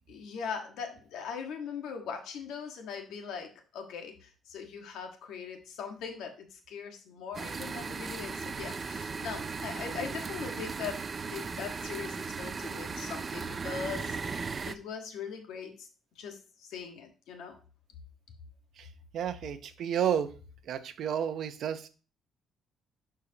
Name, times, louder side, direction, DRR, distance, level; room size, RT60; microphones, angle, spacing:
voice 1, 0.1-11.0 11.3-14.4 14.6-15.9 16.1-17.6, left 6 dB, 80° left, 4 dB, 1.6 m, -40 dB
sound 1, 7.3-14.7, right 4 dB, 30° right, 0.5 m, -37 dB
voice 2, 19.1-20.3 20.7-21.9, right 9 dB, 60° right, 10 dB, 0.8 m, -31 dB
11.0 x 4.8 x 2.9 m, 0.36 s
cardioid pair, 140°, 0 cm